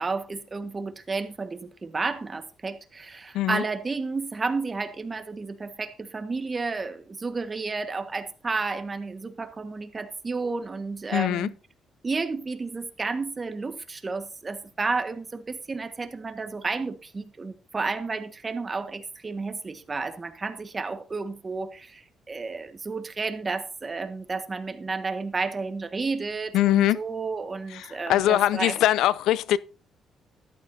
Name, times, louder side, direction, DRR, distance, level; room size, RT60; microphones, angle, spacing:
voice 1, 0.0-11.5 12.0-28.8, right 4 dB, 30° right, 1.5 m, -31 dB
voice 2, 11.1-11.5 26.5-27.0 27.7-29.6, left 13 dB, 85° left, 0.5 m, -22 dB
13.5 x 11.5 x 2.7 m
cardioid pair, 90°, 0 cm